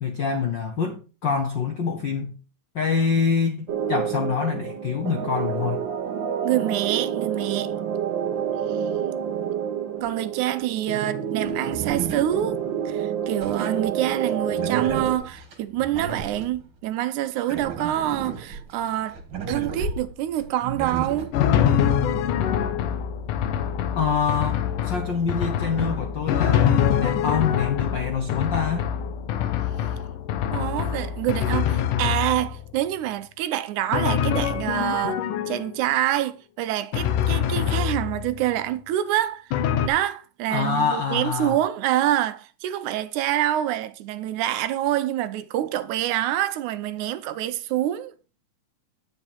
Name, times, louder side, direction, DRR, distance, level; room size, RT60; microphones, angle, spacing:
voice 1, 0.0-2.4 2.7-5.8 24.0-28.8 40.5-41.6, left 6 dB, 70° left, 1.1 m, -25 dB
sound 1, 3.7-15.1, right 8 dB, 65° right, 1.2 m, -28 dB
voice 2, 6.4-7.7 8.7-8.8 10.0-19.2 19.5-21.3 30.5-35.2 35.5-39.5 39.8-48.1, right 13 dB, 80° right, 2.1 m, -26 dB
sound 2, 10.0-10.1 11.5-12.9 13.4-16.6 17.3-21.3, right 5 dB, 45° right, 2.5 m, -34 dB
Drum, 21.3-32.7 33.9-35.9 36.9-38.4 39.5-39.9, left 9 dB, 85° left, 2.5 m, -24 dB
9.8 x 7.6 x 4.4 m
omnidirectional pair, 3.6 m